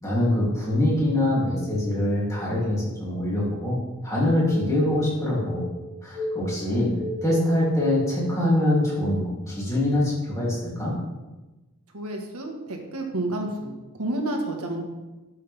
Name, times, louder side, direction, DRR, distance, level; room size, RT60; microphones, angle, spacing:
voice 1, 0.0-5.7 6.0-6.9 7.2-10.9, left 1 dB, 15° left, -7 dB, 3.0 m, -24 dB
sound 1, 4.5-9.3, left 1 dB, 50° left, 3.1 m, -34 dB
voice 2, 11.9-14.8, right 1 dB, 85° right, 2 dB, 1.6 m, -30 dB
12.0 x 6.5 x 3.5 m, 1.1 s
head